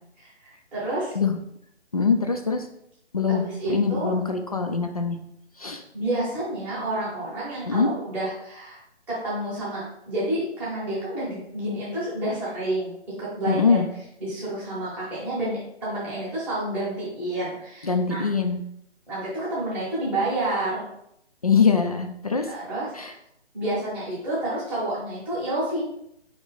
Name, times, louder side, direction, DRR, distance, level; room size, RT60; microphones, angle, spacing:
voice 1, 0.2-1.2 3.3-4.1 5.9-8.8 9.1-12.9 13.2-13.8 14.2-18.2 19.1-20.8 22.5-23.1 23.5-25.8, right 1 dB, 5° right, -10 dB, 0.9 m, -29 dB
voice 2, 1.9-2.7 3.1-5.2 5.6-5.8 7.7-7.9 13.5-13.9 17.8-18.6 21.4-22.5 22.9-23.1, left 5 dB, 35° left, 5 dB, 0.4 m, -23 dB
4.3 x 3.1 x 3.8 m, 0.76 s
figure-of-eight pair, 145°, 34 cm